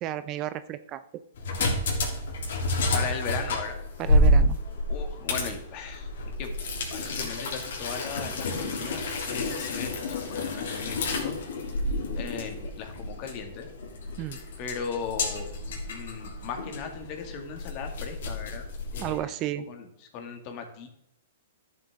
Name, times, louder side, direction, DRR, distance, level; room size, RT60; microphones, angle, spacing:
voice 1, 0.0-1.0 4.0-4.6 14.2-14.4 19.0-19.6, right 13 dB, 30° right, 13 dB, 0.4 m, -32 dB
sound 1, 1.3-19.2, left 1 dB, 75° left, 3.0 m, -29 dB
voice 2, 2.9-3.8 4.9-6.1 6.4-6.5 6.9-11.3 12.2-13.7 14.6-15.5 15.9-18.6 18.9-19.3 19.7-19.9 20.1-20.9, left 6 dB, 40° left, 4 dB, 2.1 m, -37 dB
11.5 x 7.6 x 3.6 m, 0.75 s
hypercardioid pair, 145°, 0 cm